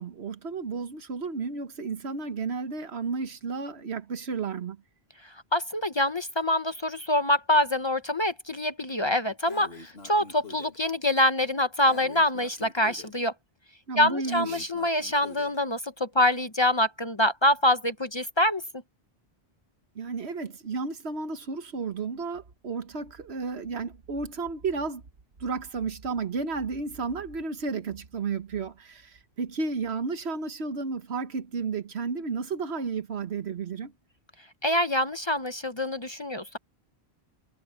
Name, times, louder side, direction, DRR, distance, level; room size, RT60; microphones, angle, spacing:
voice 1, 0.0-4.8 13.9-14.7 19.9-25.0 25.4-33.9, right 4 dB, 80° right, 1.5 m, -32 dB
voice 2, 5.5-13.3 14.0-18.6 34.6-36.6, left 1 dB, 30° left, 0.7 m, -25 dB
Breathing, 9.5-10.8 11.8-13.2 14.2-15.6, left 3 dB, 75° left, 2.7 m, -46 dB
omnidirectional pair, 1.1 m